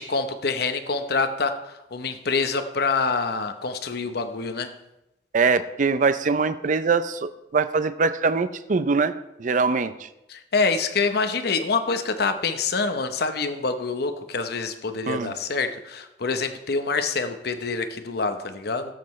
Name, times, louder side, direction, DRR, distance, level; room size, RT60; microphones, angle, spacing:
voice 1, 0.0-4.7 10.3-18.9, left 4 dB, 65° left, 8 dB, 0.8 m, -26 dB
voice 2, 5.3-9.1 9.4-10.1 15.1-15.3, right 4 dB, 45° right, 12 dB, 0.5 m, -23 dB
17.5 x 7.6 x 3.2 m, 0.91 s
head